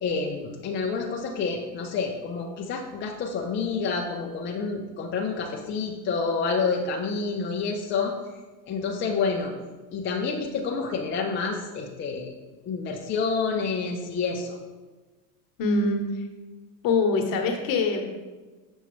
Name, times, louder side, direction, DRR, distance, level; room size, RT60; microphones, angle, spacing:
voice 1, 0.0-8.1 8.7-9.5 9.9-12.3 12.7-14.6, left 4 dB, 25° left, 0 dB, 0.6 m, -28 dB
voice 2, 15.6-16.0 16.8-18.0, left 3 dB, 45° left, 4 dB, 1.1 m, -23 dB
7.1 x 5.4 x 3.1 m, 1.3 s
supercardioid pair, 115°, 47 cm